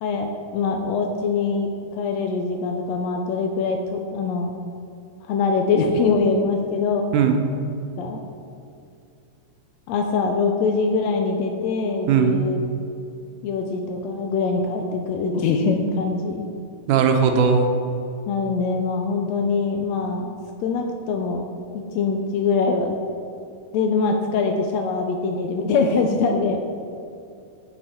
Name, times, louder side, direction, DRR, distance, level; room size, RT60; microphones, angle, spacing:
voice 1, 0.0-4.5 5.3-7.1 8.0-8.2 9.9-12.6 13.4-16.5 18.3-20.3 20.6-21.4 21.7-23.0 23.7-26.7, left 4 dB, 80° left, 3 dB, 1.6 m, -23 dB
voice 2, 12.1-12.4 16.9-17.7, right 6 dB, 90° right, 5 dB, 2.2 m, -18 dB
7.9 x 6.5 x 4.2 m, 2.6 s
omnidirectional pair, 3.4 m